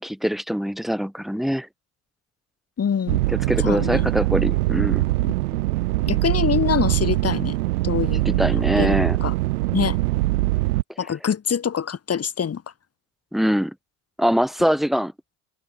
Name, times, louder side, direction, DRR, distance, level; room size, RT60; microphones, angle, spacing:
voice 1, 0.0-1.7 3.3-5.1 8.3-9.2 13.3-13.7 14.2-15.1, equal, ahead, 5.2 m, -23 dB
voice 2, 2.8-3.2 3.6-4.1 5.2-5.3 6.1-7.5 7.8-9.3 9.7-10.0 11.0-12.6, left 7 dB, 35° left, 7.8 m, -25 dB
sound 1, 3.1-10.8, right 19 dB, 85° right, 0.9 m, -22 dB
hypercardioid pair, 90°, 44 cm